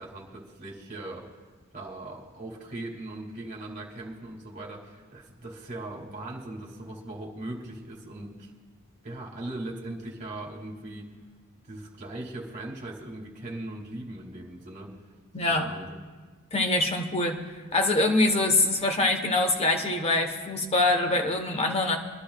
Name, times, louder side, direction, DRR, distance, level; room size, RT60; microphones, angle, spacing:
voice 1, 0.0-1.3 1.7-8.5 9.0-11.1 11.7-14.9 15.5-15.9, right 2 dB, 35° right, -3 dB, 2.2 m, -39 dB
voice 2, 15.3-15.7 16.5-17.4 17.7-22.0, left 2 dB, 30° left, 4 dB, 1.0 m, -24 dB
25.0 x 12.0 x 2.3 m, 1.4 s
head